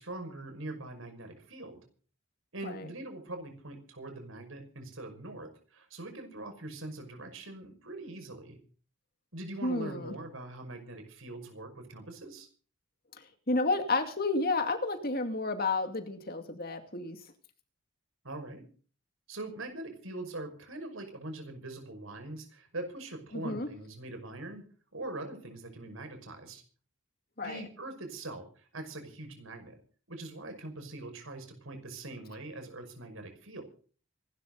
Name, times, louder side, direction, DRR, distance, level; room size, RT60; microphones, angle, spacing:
voice 1, 0.0-1.8 2.5-8.6 9.3-12.5 18.2-18.6 19.3-26.6 27.4-29.8 30.1-33.6, right 2 dB, 75° right, 6 dB, 5.8 m, -42 dB
voice 2, 9.6-10.1 13.5-17.2 23.3-23.7 27.4-27.6, left 3 dB, 45° left, 7 dB, 2.4 m, -31 dB
25.5 x 12.5 x 4.0 m, 0.41 s
head